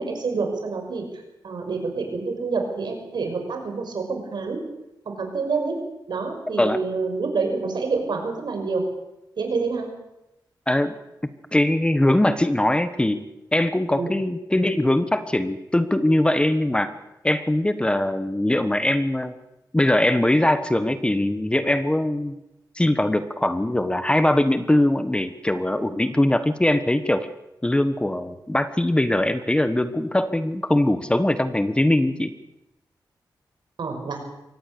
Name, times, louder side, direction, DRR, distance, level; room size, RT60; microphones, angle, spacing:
voice 1, 0.0-4.6 5.0-5.8 6.1-8.9 9.4-9.9 14.0-14.1 33.8-34.2, right 4 dB, 70° right, 4 dB, 6.0 m, -27 dB
voice 2, 11.5-13.2 13.5-16.9 17.2-19.3 19.7-22.3 22.7-27.3 27.6-32.3, left 1 dB, 15° left, 11 dB, 1.3 m, -21 dB
23.5 x 18.0 x 7.0 m, 0.91 s
wide cardioid pair, 90°, 8 cm